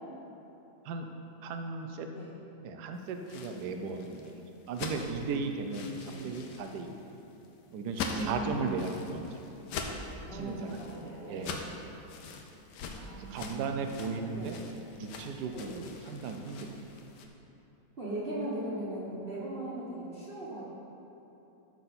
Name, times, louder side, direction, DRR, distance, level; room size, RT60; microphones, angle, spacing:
voice 1, 1.4-2.1 2.6-7.0 7.7-9.4 10.3-10.9 11.3-11.7 13.2-14.6 15.0-16.8, right 4 dB, 70° right, 5 dB, 1.2 m, -36 dB
sound 1, 3.1-17.3, left 4 dB, 75° left, 1.4 m, -43 dB
voice 2, 8.1-8.5 10.2-11.3 13.0-13.7 14.3-14.5 15.5-15.7 18.0-20.7, right 1 dB, 35° right, -8 dB, 1.6 m, -38 dB
13.5 x 6.2 x 4.2 m, 2.9 s
omnidirectional pair, 1.9 m